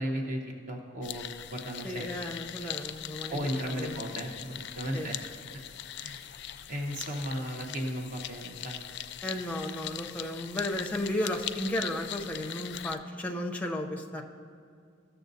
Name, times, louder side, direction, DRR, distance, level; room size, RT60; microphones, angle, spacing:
voice 1, 0.0-2.1 3.3-5.2 5.5-5.6 6.0-6.2 6.7-8.8, equal, 40° right, 1 dB, 0.8 m, -35 dB
sound 1, 1.0-13.0, left 11 dB, 60° left, 0.3 m, -41 dB
voice 2, 1.8-3.5 3.8-4.0 4.9-5.1 9.2-14.2, left 1 dB, 5° left, 2 dB, 0.6 m, -34 dB
14.0 x 6.9 x 2.6 m, 2.3 s
head